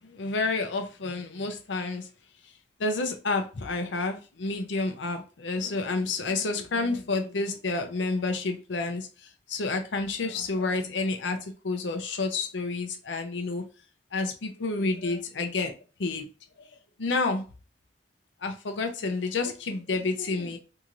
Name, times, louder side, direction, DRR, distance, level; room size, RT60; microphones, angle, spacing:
voice 1, 0.1-2.1 2.8-9.1 9.5-11.4 11.6-13.7 14.1-15.7 16.0-16.3 17.0-17.4 18.4-20.6, left 3 dB, 80° left, 0.6 m, -29 dB
2.7 x 2.5 x 2.9 m
head